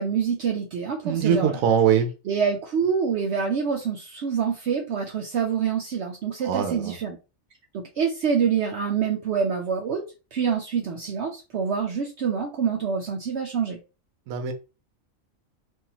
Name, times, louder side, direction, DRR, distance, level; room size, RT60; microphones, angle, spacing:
voice 1, 0.0-1.6 2.3-7.2 7.7-10.0 10.3-13.8, right 6 dB, 65° right, 2 dB, 0.8 m, -26 dB
voice 2, 1.0-2.1 6.4-7.0 14.3-14.5, right 8 dB, 85° right, 7 dB, 1.1 m, -22 dB
4.0 x 2.7 x 2.8 m, 0.31 s
omnidirectional pair, 1.4 m